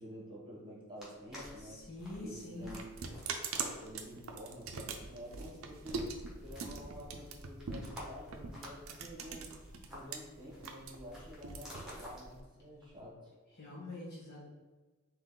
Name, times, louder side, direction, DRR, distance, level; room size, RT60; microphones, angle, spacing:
voice 1, 0.0-1.8 2.2-2.9 3.8-6.1 6.4-9.6 9.9-13.3, equal, 20° right, -5 dB, 1.2 m, -49 dB
sound 1, 1.0-13.1, equal, 5° right, 1.1 m, -51 dB
voice 2, 1.7-2.8 13.6-14.5, left 2 dB, 50° left, -5 dB, 1.3 m, -45 dB
sound 2, 2.0-10.2 10.5-12.4, right 5 dB, 70° right, 0.5 m, -42 dB
3.8 x 3.0 x 3.7 m, 1.3 s
head